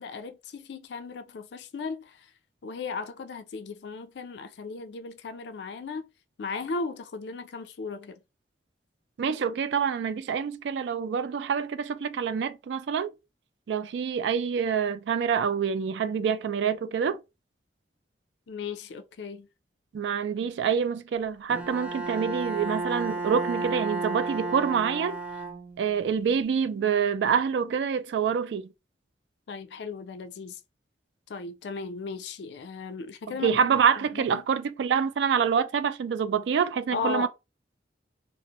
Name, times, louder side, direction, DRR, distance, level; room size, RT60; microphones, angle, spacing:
voice 1, 0.0-2.3 2.6-6.0 6.4-8.2 18.5-19.5 29.5-30.6 31.3-33.6 34.0-34.4 36.9-37.3, left 4 dB, 70° left, 0.4 m, -36 dB
voice 2, 9.2-13.1 13.7-17.2 19.9-25.2 25.8-28.7 33.3-37.3, right 7 dB, 75° right, 0.3 m, -26 dB
Bowed string instrument, 21.5-26.0, right 3 dB, 10° right, 0.5 m, -32 dB
2.5 x 2.0 x 2.8 m
head